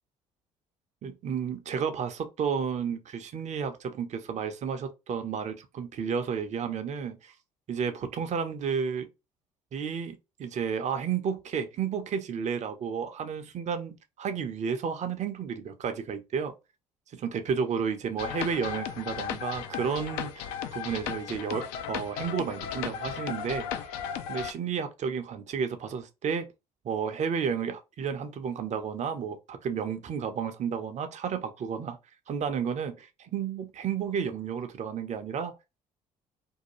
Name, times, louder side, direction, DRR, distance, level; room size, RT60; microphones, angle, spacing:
voice 1, 1.0-7.3 7.7-9.1 9.7-10.1 10.4-16.5 17.1-23.7 24.3-26.5 26.8-32.0 32.3-35.5, right 6 dB, 45° right, 0.6 m, -32 dB
sound 1, 18.2-24.5, left 8 dB, 70° left, 0.4 m, -35 dB
2.7 x 2.2 x 2.9 m
hypercardioid pair, 55°, 17 cm